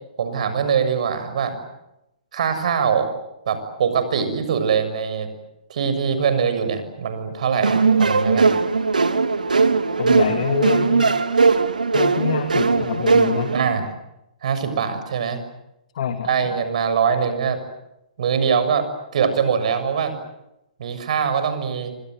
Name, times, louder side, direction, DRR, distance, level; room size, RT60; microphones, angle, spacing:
voice 1, 0.2-1.6 2.3-3.1 3.4-5.3 5.7-8.5 13.5-13.9 14.4-15.4 16.2-17.6 18.2-20.1 20.8-21.9, right 6 dB, 60° right, 10 dB, 6.8 m, -22 dB
sound 1, 7.6-13.6, right 4 dB, 85° right, 2.3 m, -19 dB
voice 2, 10.0-11.1 11.9-13.5 15.9-16.3, left 8 dB, 55° left, 6 dB, 2.9 m, -25 dB
29.0 x 25.5 x 7.9 m, 0.88 s
figure-of-eight pair, 125°, 4 cm